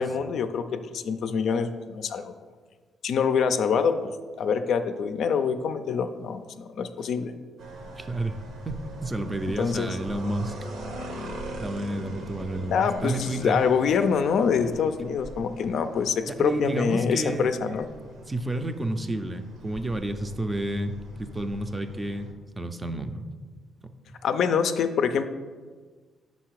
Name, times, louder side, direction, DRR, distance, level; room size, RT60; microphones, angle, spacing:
voice 1, 0.0-2.3 3.0-4.0 4.4-7.3 9.6-9.9 12.7-17.9 24.2-25.3, left 6 dB, 70° left, 8 dB, 0.4 m, -25 dB
sound 1, 7.6-22.3, right 1 dB, 75° right, 0.9 m, -41 dB
voice 2, 8.0-8.4 8.7-10.5 11.6-13.6 16.3-17.5 18.3-23.3 23.8-23.9, right 1 dB, 20° right, 8 dB, 0.4 m, -30 dB
5.6 x 4.1 x 4.6 m, 1.5 s
cardioid pair, 90°, 0 cm